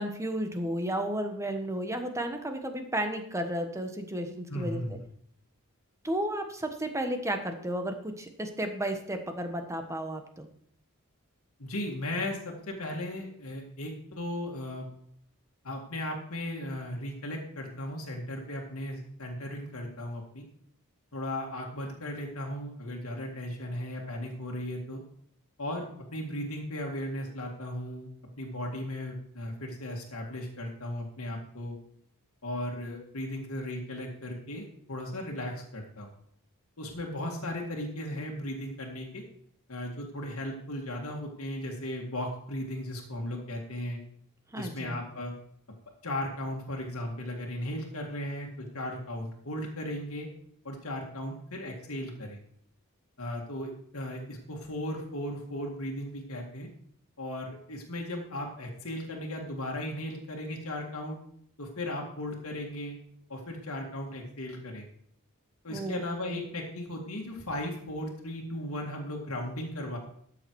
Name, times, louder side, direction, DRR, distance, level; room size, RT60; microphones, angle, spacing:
voice 1, 0.0-5.0 6.0-10.5 44.5-45.0 65.7-66.0 66.3-66.4, right 1 dB, 15° right, 6 dB, 1.2 m, -33 dB
voice 2, 4.5-5.0 11.6-14.9 15.6-20.5 21.1-25.0 25.6-28.1 28.4-31.8 32.4-36.1 36.8-39.2 39.7-44.0 44.5-45.3 46.0-50.3 50.6-52.4 53.2-56.7 57.2-61.2 61.6-63.0 63.3-64.9 65.6-70.0, left 1 dB, 70° left, -1 dB, 2.0 m, -36 dB
13.0 x 7.0 x 4.7 m, 0.67 s
head